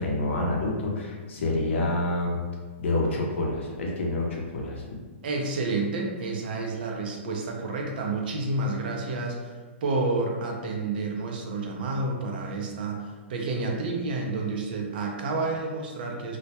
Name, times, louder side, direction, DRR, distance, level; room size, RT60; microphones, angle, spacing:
voice 1, 0.0-2.4 2.8-4.8, left 2 dB, 70° left, -1 dB, 0.6 m, -27 dB
voice 2, 5.2-16.4, right 3 dB, 45° right, 0 dB, 0.4 m, -30 dB
2.2 x 2.0 x 2.7 m, 1.4 s
hypercardioid pair, 170°, 7 cm